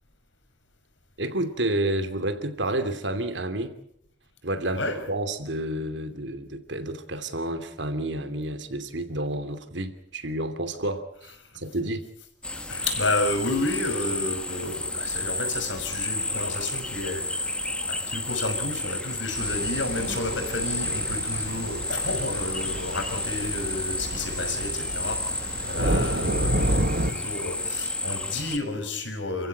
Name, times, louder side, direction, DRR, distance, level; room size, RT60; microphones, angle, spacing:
voice 1, 1.2-3.8 4.4-12.1, right 1 dB, 75° right, 9 dB, 2.8 m, -30 dB
sound 1, 12.4-28.6, left 2 dB, 5° left, 1.4 m, -31 dB
voice 2, 12.5-29.5, left 2 dB, 90° left, 6 dB, 6.1 m, -31 dB
sound 2, 19.4-27.1, right 1 dB, 55° right, 1.6 m, -30 dB
29.5 x 15.5 x 9.2 m, 0.73 s
head